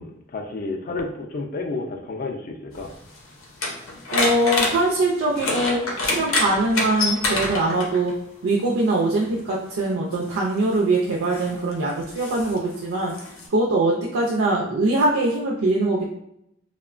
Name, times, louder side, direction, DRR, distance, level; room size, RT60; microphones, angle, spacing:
voice 1, 0.0-2.9, left 3 dB, 45° left, 3 dB, 0.3 m, -31 dB
sound 1, 2.7-8.1 9.2-9.4 10.1-13.5, left 2 dB, 85° left, 0.6 m, -27 dB
voice 2, 4.1-8.1 8.4-13.1 13.5-16.1, right 2 dB, 85° right, -3 dB, 0.4 m, -22 dB
2.9 x 2.1 x 2.4 m, 0.77 s
head